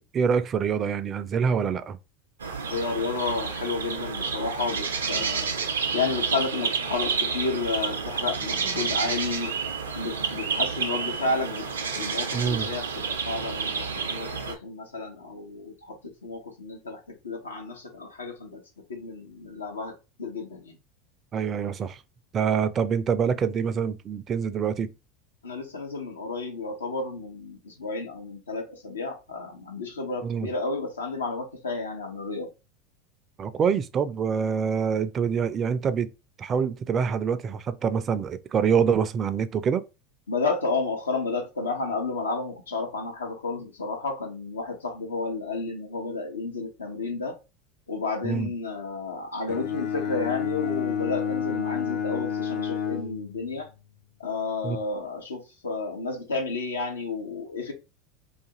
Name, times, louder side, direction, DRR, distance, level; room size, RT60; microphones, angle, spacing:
voice 1, 0.0-2.0 12.3-12.7 21.3-22.0 22.3-24.9 30.2-30.5 33.4-36.1 36.4-39.8 48.2-48.5 54.6-54.8, right 7 dB, 35° right, 0.4 m, -25 dB
sound 1, 2.4-14.5, right 5 dB, 90° right, 0.5 m, -30 dB
voice 2, 2.7-5.5 5.9-9.5 9.9-11.7 11.9-18.6 18.9-20.8 25.4-32.5 40.3-47.4 47.9-53.7 54.2-57.7, left 3 dB, 90° left, 0.8 m, -31 dB
Bowed string instrument, 49.5-53.7, left 7 dB, 55° left, 0.4 m, -30 dB
2.5 x 2.4 x 2.9 m
hypercardioid pair, 85°, 0 cm